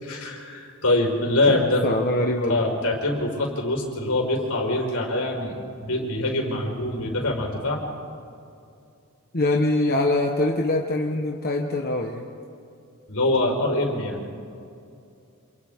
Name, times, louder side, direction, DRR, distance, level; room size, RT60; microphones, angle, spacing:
voice 1, 0.0-1.8 2.5-5.6 5.8-7.8 13.1-14.2, left 2 dB, 80° left, 0 dB, 4.8 m, -24 dB
voice 2, 1.5-2.6 9.3-12.3, left 2 dB, 45° left, 0 dB, 1.3 m, -24 dB
29.0 x 27.5 x 3.7 m, 2.5 s
head